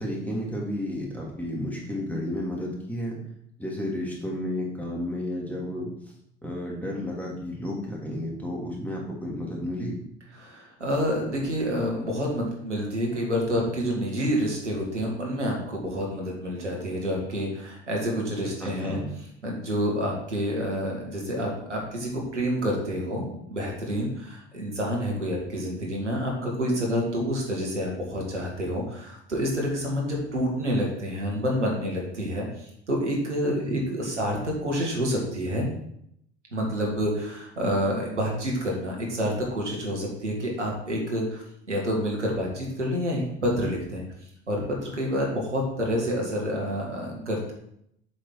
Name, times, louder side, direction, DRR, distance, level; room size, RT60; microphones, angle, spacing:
voice 1, 0.0-3.2 3.6-5.9 6.4-10.0 18.6-19.0 33.6-33.8 34.1-34.2, left 1 dB, 5° left, -3 dB, 2.8 m, -32 dB
voice 2, 10.4-19.0 19.4-35.7 36.5-44.0 44.5-47.5, equal, 85° right, -2 dB, 1.8 m, -28 dB
7.7 x 5.7 x 4.6 m, 0.73 s
figure-of-eight pair, 60°, 35 cm